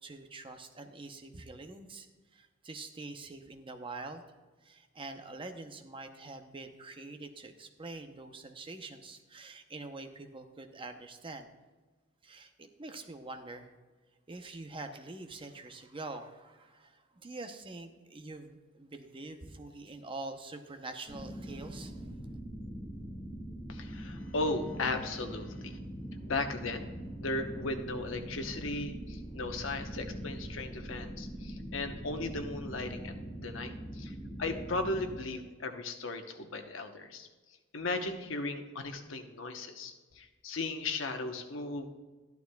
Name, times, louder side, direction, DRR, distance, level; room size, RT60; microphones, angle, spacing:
voice 1, 0.0-2.1 2.3-4.2 4.6-11.5 12.2-13.7 14.3-22.1, right 2 dB, 25° right, 6 dB, 0.7 m, -45 dB
sound 1, 21.1-35.2, right 1 dB, 25° left, 2.0 m, -42 dB
voice 2, 23.7-25.8 26.2-26.9 27.2-37.3 37.7-41.9, left 2 dB, 75° left, 6 dB, 1.0 m, -36 dB
13.0 x 11.5 x 2.3 m, 1.3 s
head